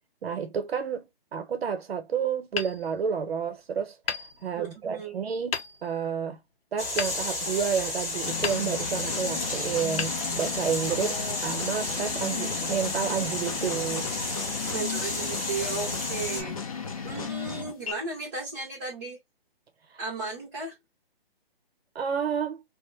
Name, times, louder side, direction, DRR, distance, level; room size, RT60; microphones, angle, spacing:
voice 1, 0.2-6.4 6.7-11.2 11.4-14.1 21.9-22.6, right 7 dB, 85° right, 0.8 m, -30 dB
Hammer, 2.5-3.5 4.0-5.0 5.5-6.1 7.0-7.9 8.4-9.2 9.9-10.9, left 6 dB, 80° left, 0.6 m, -36 dB
voice 2, 4.6-5.2 10.9-11.4 14.7-16.6 17.0-19.2 20.0-20.8, right 4 dB, 20° right, 0.5 m, -35 dB
sound 1, 6.8-16.4, left 2 dB, 15° left, 0.9 m, -32 dB
sound 2, 8.2-17.9, left 6 dB, 35° left, 0.4 m, -35 dB
2.4 x 2.1 x 3.0 m
hypercardioid pair, 165°, 30 cm